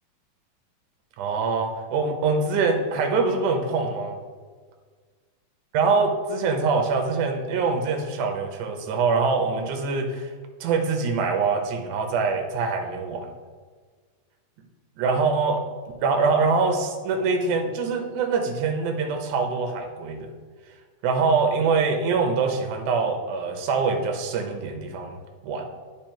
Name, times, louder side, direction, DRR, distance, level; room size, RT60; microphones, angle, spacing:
voice 1, 1.2-4.2 5.7-10.3 10.6-13.3 15.0-15.6 16.0-20.3 21.0-25.2 25.4-25.7, right 4 dB, 70° right, 4 dB, 2.2 m, -24 dB
9.1 x 5.4 x 4.4 m, 1.5 s
omnidirectional pair, 4.1 m